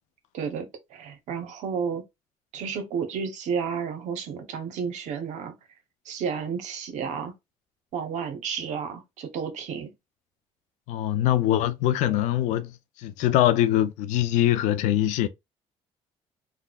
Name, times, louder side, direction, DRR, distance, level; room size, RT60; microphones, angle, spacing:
voice 1, 0.3-2.0 2.5-5.6 6.0-7.3 7.9-9.9, right 6 dB, 75° right, 0.8 m, -31 dB
voice 2, 10.9-15.3, left 13 dB, 85° left, 0.4 m, -23 dB
3.6 x 2.1 x 2.3 m
supercardioid pair, 80°, 12 cm